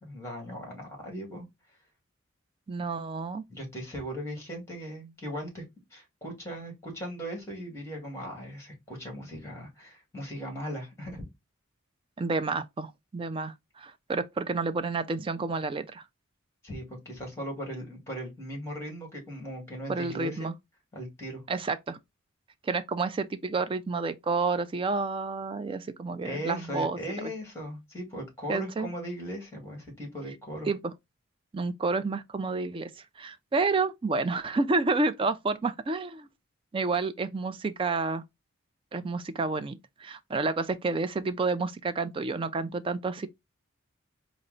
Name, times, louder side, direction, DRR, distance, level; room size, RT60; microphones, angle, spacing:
voice 1, 0.0-1.5 3.5-5.6 5.9-11.3 16.6-20.5 20.9-21.4 26.2-30.7, equal, 15° left, 1.8 m, -38 dB
voice 2, 2.7-3.4 12.2-16.0 19.9-20.5 21.5-22.0 22.6-27.3 28.5-28.9 30.6-30.8 31.5-32.9 33.2-36.3 36.7-38.2 38.9-43.3, right 3 dB, 25° right, 0.3 m, -30 dB
4.3 x 2.0 x 3.8 m
head